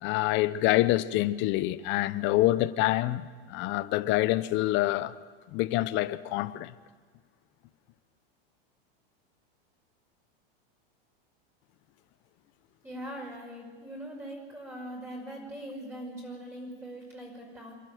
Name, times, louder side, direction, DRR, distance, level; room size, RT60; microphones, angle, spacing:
voice 1, 0.0-5.1 5.5-6.7, left 16 dB, 40° left, 0.9 m, -26 dB
voice 2, 12.8-17.7, right 1 dB, 10° right, 5.9 m, -41 dB
27.5 x 11.5 x 9.4 m
supercardioid pair, 140°, 30 cm